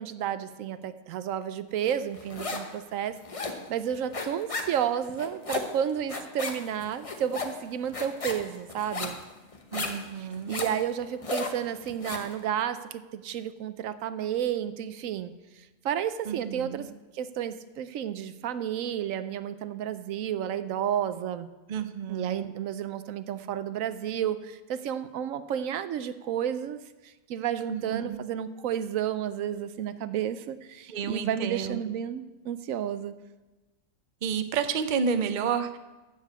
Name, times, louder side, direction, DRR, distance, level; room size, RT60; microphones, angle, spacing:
voice 1, 0.0-3.2 3.5-9.2 10.2-15.3 15.8-21.5 22.1-33.1, right 9 dB, 75° right, 13 dB, 1.0 m, -31 dB
sound 1, 1.9-2.8 3.0-12.3, left 3 dB, 30° left, 0.9 m, -35 dB
voice 2, 9.7-10.6 16.3-16.9 21.7-22.5 27.7-28.3 30.9-31.8 34.2-35.8, right 6 dB, 45° right, 10 dB, 0.6 m, -30 dB
13.0 x 4.9 x 8.1 m, 1.1 s
omnidirectional pair, 1.4 m